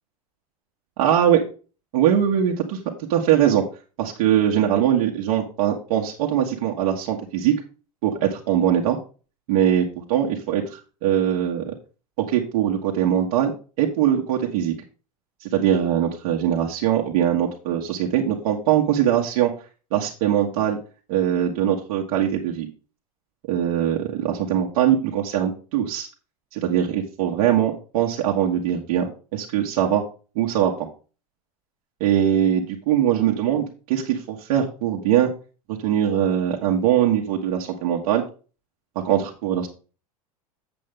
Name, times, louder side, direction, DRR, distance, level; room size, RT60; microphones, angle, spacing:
voice 1, 1.0-1.4 1.9-2.8 3.1-3.6 4.0-7.5 8.0-9.0 9.5-11.7 12.3-13.5 13.8-14.7 15.4-19.5 19.9-20.8 21.1-22.7 23.5-26.1 26.5-30.0 30.3-30.7 32.0-35.3 35.7-38.2 39.0-39.7, right 10 dB, 65° right, -1 dB, 1.6 m, -21 dB
7.7 x 7.6 x 3.7 m, 0.35 s
hypercardioid pair, 85°, 19 cm